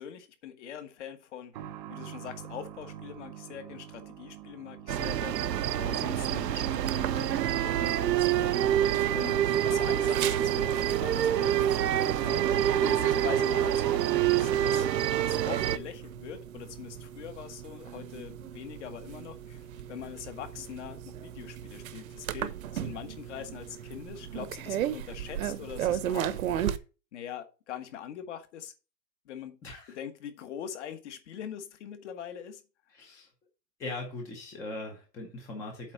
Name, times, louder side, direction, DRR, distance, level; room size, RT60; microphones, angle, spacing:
voice 1, 0.0-1.5 1.9-12.5 12.8-14.9 15.2-26.6 27.1-28.7 29.2-29.6 29.9-32.6, left 9 dB, 45° left, 1.4 m, -43 dB
sound 1, 1.5-16.0 16.2-16.3 17.3-17.4, right 10 dB, 30° right, 0.7 m, -50 dB
sound 2, 4.9-15.8, right 11 dB, 80° right, 0.8 m, -26 dB
sound 3, 6.9-26.8, right 10 dB, 55° right, 1.0 m, -38 dB
voice 2, 29.6-30.0 32.9-33.3 33.8-35.9, left 2 dB, 5° left, 0.6 m, -40 dB
8.3 x 3.9 x 6.8 m
hypercardioid pair, 155°, 49 cm